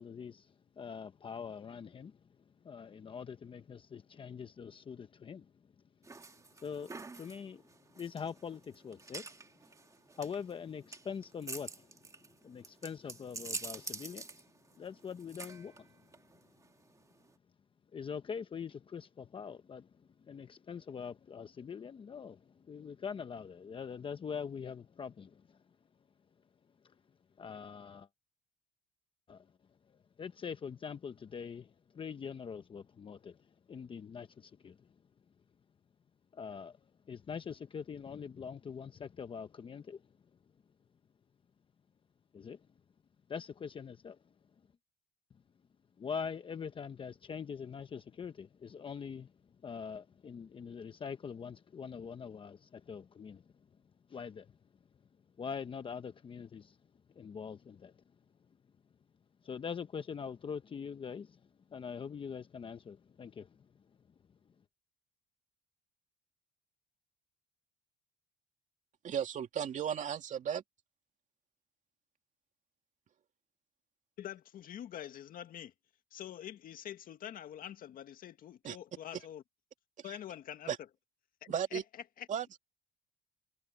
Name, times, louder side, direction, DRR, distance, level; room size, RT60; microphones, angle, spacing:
voice 1, 0.0-2.2 2.6-5.5 6.6-7.6 7.9-9.5 10.1-12.0 12.4-14.4 14.8-16.0 17.9-19.9 20.2-25.6 26.8-26.9 27.4-28.1 29.3-29.5 29.9-34.9 36.3-36.8 37.1-40.0 42.3-42.7 43.3-44.2 46.0-49.3 49.6-53.4 54.1-54.5 55.4-56.8 57.1-58.0 59.4-61.4 61.7-63.7, left 6 dB, 30° left, 0.9 m, -43 dB
sound 1, 6.0-17.3, right 3 dB, 20° right, 2.0 m, -47 dB
voice 2, 69.0-70.6 78.6-78.8 80.0-80.2 80.7-80.8 81.5-81.8 82.3-82.6, right 8 dB, 45° right, 2.5 m, -35 dB
voice 3, 74.2-75.7 76.1-79.4 80.0-80.7 81.4-81.8 82.2-82.3, left 11 dB, 50° left, 1.9 m, -45 dB
cardioid pair, 125°, 18 cm